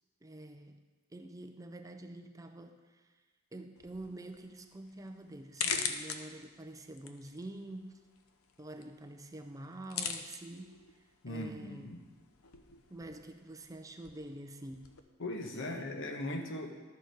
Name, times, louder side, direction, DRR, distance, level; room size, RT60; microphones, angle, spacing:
voice 1, 0.2-0.8 1.1-3.1 3.5-8.0 8.6-10.8 11.3-11.9 12.9-15.0 15.5-15.9, right 1 dB, 15° right, 6 dB, 0.5 m, -47 dB
sound 1, 3.8-15.0, left 6 dB, 80° left, 0.7 m, -43 dB
voice 2, 11.2-12.0 15.2-16.7, left 1 dB, 65° left, 4 dB, 1.1 m, -39 dB
12.0 x 6.7 x 4.7 m, 1.4 s
head